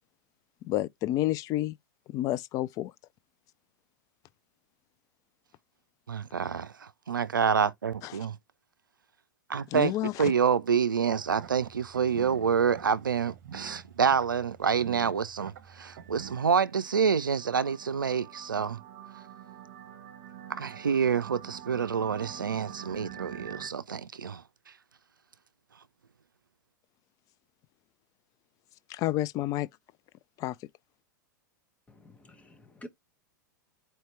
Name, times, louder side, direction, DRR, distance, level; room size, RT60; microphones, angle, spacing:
voice 1, 0.6-1.8 2.1-2.9 8.0-8.2 9.7-10.3 28.9-29.7 30.4-30.6, left 15 dB, 35° left, 0.3 m, -30 dB
voice 2, 6.1-8.4 9.5-9.9 10.2-18.8 20.5-24.4, right 6 dB, 85° right, 0.4 m, -27 dB
sound 1, 11.1-16.4, right 9 dB, 60° right, 0.9 m, -47 dB
sound 2, 15.8-23.7, right 10 dB, 45° right, 1.4 m, -47 dB
voice 3, 31.9-32.9, equal, 15° left, 0.9 m, -49 dB
4.5 x 2.8 x 3.1 m
figure-of-eight pair, 100°, 11 cm